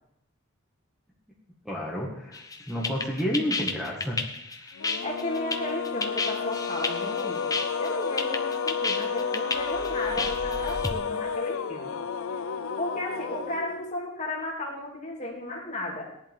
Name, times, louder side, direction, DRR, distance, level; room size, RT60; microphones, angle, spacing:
voice 1, 1.7-2.4 2.7-4.2, equal, ahead, -3 dB, 1.8 m, -30 dB
sound 1, 2.3-10.9, left 3 dB, 15° left, 0.8 m, -32 dB
sound 2, 4.7-14.1, left 5 dB, 90° left, 0.6 m, -31 dB
voice 2, 5.0-7.4 7.8-12.0 12.8-16.1, left 1 dB, 35° left, -3 dB, 2.8 m, -34 dB
17.0 x 11.0 x 3.7 m, 0.79 s
head